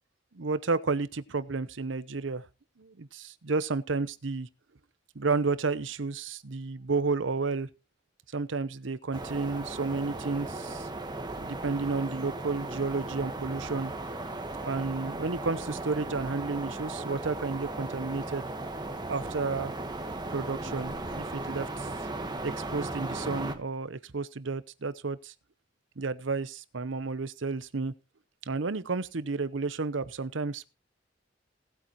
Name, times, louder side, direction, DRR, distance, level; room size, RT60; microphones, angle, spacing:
voice 1, 0.3-2.4 2.8-4.5 5.1-7.7 8.3-10.9 11.4-13.9 14.6-18.5 19.1-19.7 20.3-21.9 22.4-25.3 26.0-27.9 28.5-30.7, right 4 dB, 85° right, 0.8 m, -31 dB
sound 1, 9.1-23.5, right 2 dB, 25° right, 1.3 m, -36 dB
18.5 x 8.3 x 3.0 m
head